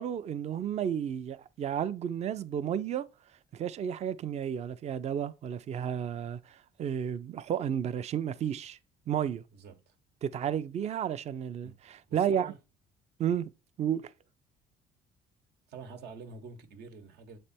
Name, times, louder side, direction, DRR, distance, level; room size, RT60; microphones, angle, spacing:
voice 1, 0.0-3.0 3.5-8.8 9.1-9.4 10.2-12.5 13.2-13.5 13.8-14.0, right 9 dB, 40° right, 0.4 m, -32 dB
voice 2, 9.5-9.9 11.6-11.8 12.1-12.6 15.7-17.4, right 5 dB, 80° right, 1.2 m, -47 dB
7.4 x 3.3 x 4.2 m
cardioid pair, 110°, 17 cm